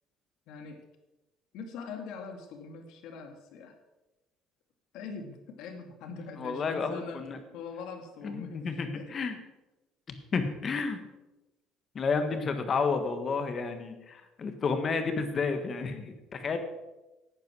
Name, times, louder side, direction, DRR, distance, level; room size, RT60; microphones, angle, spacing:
voice 1, 0.5-0.8 1.5-3.8 4.9-7.2 7.5-9.2, left 5 dB, 65° left, 5 dB, 2.2 m, -42 dB
voice 2, 6.4-7.4 8.2-9.4 10.1-11.0 11.9-16.6, left 4 dB, 30° left, 8 dB, 1.5 m, -31 dB
11.0 x 9.1 x 6.2 m, 1.0 s
cardioid pair, 155°, 0 cm